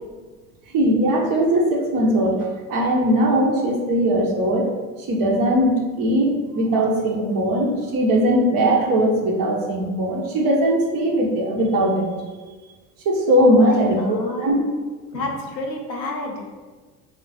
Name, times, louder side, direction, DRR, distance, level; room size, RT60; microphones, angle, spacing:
voice 1, 0.7-4.7 5.1-12.1 13.0-14.6, right 1 dB, 40° right, -1 dB, 1.1 m, -19 dB
voice 2, 13.5-14.5 15.1-16.5, left 2 dB, 90° left, 1 dB, 0.7 m, -29 dB
3.6 x 3.2 x 4.1 m, 1.3 s
figure-of-eight pair, 65°, 50 cm